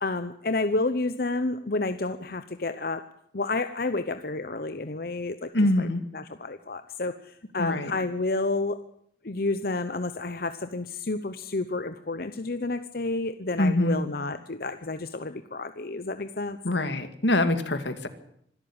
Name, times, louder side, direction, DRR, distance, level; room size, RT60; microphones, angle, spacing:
voice 1, 0.0-3.1 3.3-5.5 5.8-5.9 6.1-8.8 9.2-16.6, left 3 dB, 55° left, 10 dB, 0.9 m, -30 dB
voice 2, 5.5-6.0 7.6-7.9 13.6-14.0 16.6-18.1, left 1 dB, 80° left, 9 dB, 2.3 m, -24 dB
25.0 x 13.0 x 8.9 m, 0.71 s
head